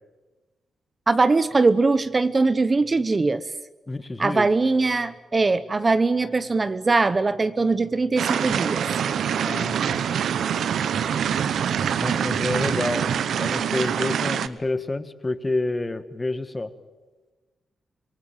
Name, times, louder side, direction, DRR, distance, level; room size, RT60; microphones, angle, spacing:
voice 1, 1.1-3.4 4.2-8.8, right 3 dB, 35° right, 13 dB, 0.9 m, -21 dB
voice 2, 3.9-4.5 9.4-10.0 12.0-13.1 13.3-16.7, left 2 dB, 25° left, 11 dB, 1.6 m, -28 dB
sound 1, 8.2-14.5, right 8 dB, 80° right, 0.9 m, -25 dB
27.5 x 18.5 x 9.1 m, 1.2 s
cardioid pair, 75°, 0 cm